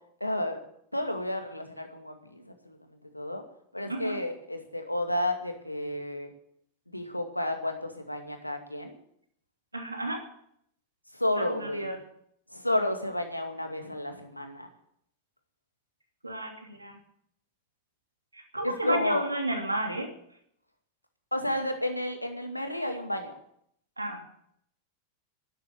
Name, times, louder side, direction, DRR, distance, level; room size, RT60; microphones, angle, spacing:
voice 1, 0.2-0.6 0.9-3.4 3.7-6.3 6.9-8.9 11.2-11.9 12.5-14.7 18.6-19.2 21.3-23.3, left 1 dB, 85° left, 5 dB, 2.3 m, -31 dB
voice 2, 9.7-10.2 11.4-12.0 16.2-17.0 18.3-20.1 24.0-24.2, right 1 dB, 85° right, 2 dB, 3.2 m, -32 dB
12.0 x 11.5 x 8.8 m, 0.69 s
figure-of-eight pair, 90°, 0 cm